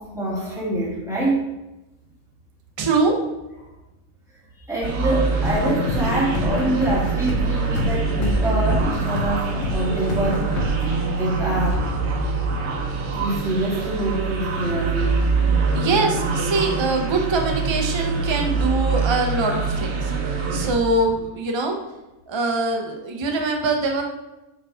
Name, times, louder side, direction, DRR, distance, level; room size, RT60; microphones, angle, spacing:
voice 1, 0.0-1.4 4.7-10.7 11.2-11.8 13.1-15.2, right 1 dB, ahead, -8 dB, 2.3 m, -25 dB
voice 2, 2.8-3.2 15.7-21.8 22.3-24.0, right 3 dB, 25° right, 2 dB, 0.6 m, -23 dB
sound 1, 4.8-20.7, right 4 dB, 55° right, 1.0 m, -24 dB
sound 2, 5.4-11.0, left 4 dB, 65° left, 1.1 m, -28 dB
5.1 x 4.6 x 4.8 m, 0.99 s
omnidirectional pair, 1.5 m